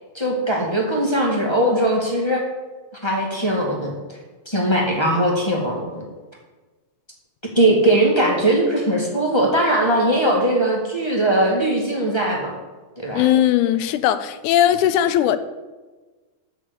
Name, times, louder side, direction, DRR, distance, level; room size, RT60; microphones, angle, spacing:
voice 1, 0.1-2.4 3.0-4.0 4.4-6.0 7.5-12.5 13.0-13.2, right 1 dB, 10° left, 1.3 m, -20 dB
voice 2, 13.1-15.4, left 11 dB, 85° left, 2.1 m, -18 dB
9.3 x 6.6 x 8.1 m
omnidirectional pair, 3.5 m